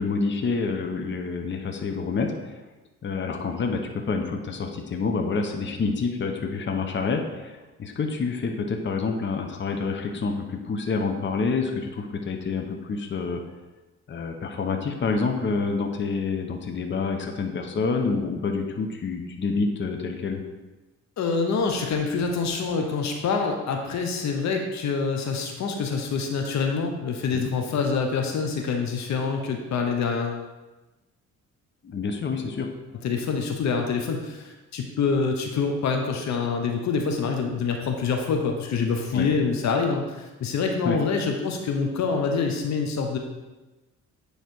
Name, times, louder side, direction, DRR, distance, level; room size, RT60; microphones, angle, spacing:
voice 1, 0.0-2.6 3.0-13.4 14.1-20.4 27.3-27.5 31.8-32.7 39.1-39.3 40.8-41.0, left 4 dB, 40° left, 4 dB, 0.9 m, -28 dB
voice 2, 21.2-30.4 33.0-43.2, left 5 dB, 65° left, 3 dB, 0.9 m, -26 dB
9.3 x 3.3 x 4.5 m, 1.1 s
cardioid pair, 90°, 30 cm